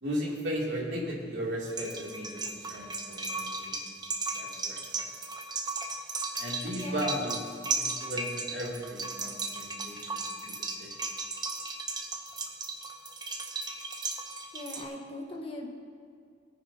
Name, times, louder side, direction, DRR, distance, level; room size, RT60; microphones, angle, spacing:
voice 1, 0.0-3.7 4.3-5.0 6.4-7.5 7.8-11.0, equal, 70° right, -4 dB, 2.9 m, -36 dB
sound 1, 1.7-14.8, right 3 dB, 25° right, 0.9 m, -36 dB
voice 2, 6.8-7.1 14.5-15.7, left 2 dB, 30° left, 0 dB, 1.4 m, -39 dB
20.0 x 9.5 x 2.9 m, 2.2 s
head